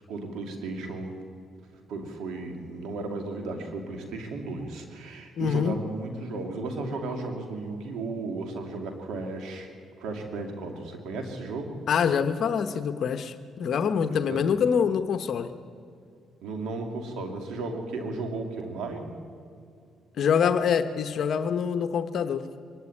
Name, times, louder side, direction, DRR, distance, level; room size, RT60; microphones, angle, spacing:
voice 1, 0.1-1.2 1.9-9.7 10.0-11.8 14.1-14.5 16.4-19.2, right 3 dB, 85° right, 3 dB, 2.7 m, -35 dB
voice 2, 5.4-5.8 11.9-15.5 20.2-22.5, left 7 dB, 65° left, 9 dB, 0.9 m, -25 dB
23.5 x 12.0 x 9.8 m, 2.5 s
cardioid pair, 90°, 0 cm